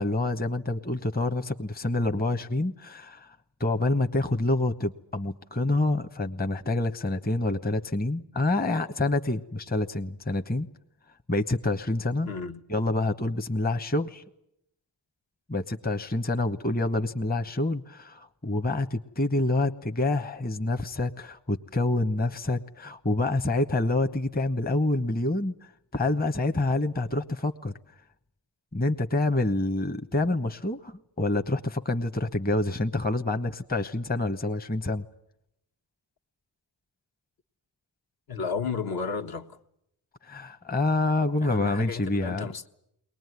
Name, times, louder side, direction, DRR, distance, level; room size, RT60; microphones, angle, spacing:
voice 1, 0.0-10.7 11.3-12.3 12.7-14.2 15.5-25.5 25.9-27.7 28.7-35.0 40.2-42.5, left 2 dB, 20° left, 1.2 m, -27 dB
voice 2, 12.2-12.6 38.3-39.6 41.4-42.7, left 5 dB, 55° left, 1.5 m, -33 dB
21.5 x 19.5 x 9.6 m
supercardioid pair, 55°, 42 cm